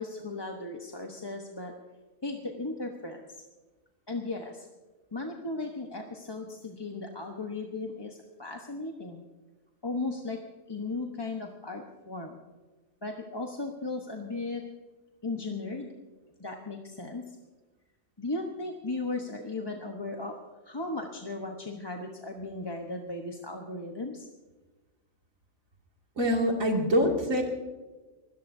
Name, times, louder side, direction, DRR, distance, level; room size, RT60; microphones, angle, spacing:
voice 1, 0.0-1.7 2.2-3.2 4.1-4.7 5.1-9.2 9.8-10.4 10.7-12.4 13.0-14.6 15.2-15.9 16.4-17.2 18.2-20.4 20.6-24.3, left 2 dB, 20° left, 1 dB, 1.1 m, -36 dB
voice 2, 26.2-27.4, equal, 85° right, 0 dB, 2.9 m, -25 dB
23.0 x 17.5 x 2.7 m, 1.3 s
omnidirectional pair, 1.4 m